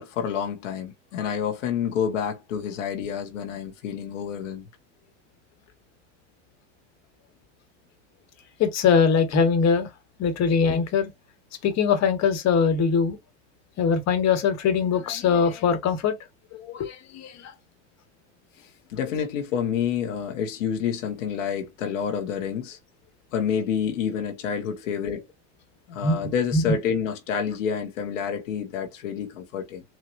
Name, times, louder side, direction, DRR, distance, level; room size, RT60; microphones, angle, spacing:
voice 1, 0.0-4.6 18.6-22.8 23.3-25.3 25.9-29.8, left 7 dB, 85° left, 1.4 m, -28 dB
voice 2, 8.6-9.9 10.2-11.1 11.6-13.2 13.8-16.1 16.6-17.5 26.0-26.2 26.5-26.7, left 5 dB, 45° left, 1.6 m, -22 dB
4.6 x 2.8 x 2.5 m
supercardioid pair, 95°, 36 cm